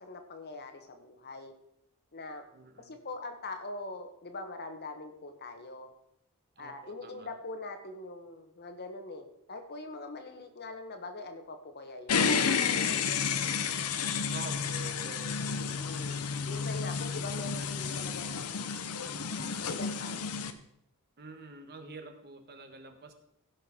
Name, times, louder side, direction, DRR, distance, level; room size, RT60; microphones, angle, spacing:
voice 1, 0.0-1.5 2.1-2.4 2.8-5.9 6.6-12.3 12.6-13.1 13.6-14.3 15.5-16.2 16.5-18.8 19.5-20.2, left 2 dB, 45° left, 6 dB, 1.4 m, -43 dB
voice 2, 2.5-3.0 6.6-7.3 14.3-16.0 21.2-23.1, right 3 dB, 45° right, 6 dB, 1.4 m, -47 dB
Fan Switching off (power down), 12.1-20.5, left 6 dB, 80° left, 0.9 m, -31 dB
16.5 x 6.3 x 4.5 m, 0.75 s
head